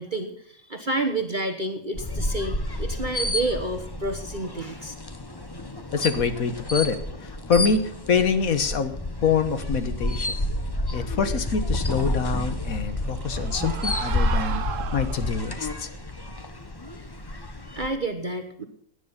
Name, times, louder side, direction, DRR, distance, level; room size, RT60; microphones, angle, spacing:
voice 1, 0.0-4.9 17.6-18.6, right 2 dB, 35° right, 6 dB, 1.3 m, -29 dB
sound 1, 1.9-17.9, left 1 dB, 20° left, 1.0 m, -30 dB
voice 2, 5.9-8.9 9.2-10.4 10.9-14.6 14.9-15.9, left 5 dB, 75° left, 10 dB, 1.7 m, -25 dB
sound 2, 12.7-15.7, right 8 dB, 65° right, 1.2 m, -35 dB
17.5 x 10.0 x 5.6 m, 0.67 s
omnidirectional pair, 1.5 m